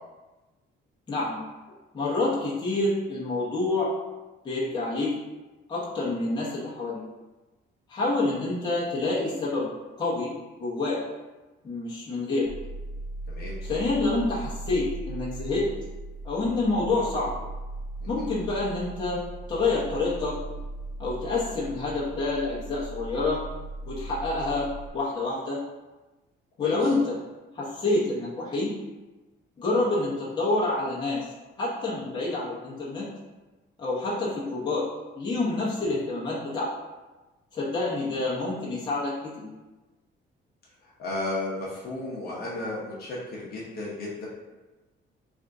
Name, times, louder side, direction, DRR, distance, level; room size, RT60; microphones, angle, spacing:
voice 1, 1.1-1.4 1.9-3.9 4.4-5.1 5.7-7.0 7.9-9.7 10.0-10.3 10.6-11.0 11.6-12.5 13.6-15.7 16.2-17.4 18.1-19.2 19.5-20.3 21.0-23.4 23.9-24.7 24.9-25.6 26.6-27.2 27.5-28.7 29.6-31.2 31.6-33.1 33.8-34.8 35.1-36.7 37.5-39.5, left 2 dB, 20° left, -7 dB, 0.9 m, -27 dB
sound 1, 12.4-24.9, right 2 dB, 65° right, 1.2 m, -38 dB
voice 2, 13.3-13.6 18.2-18.3 26.6-26.8 41.0-44.3, left 2 dB, 50° left, -5 dB, 0.8 m, -34 dB
3.5 x 2.5 x 3.7 m, 1.1 s
cardioid pair, 175°, 20 cm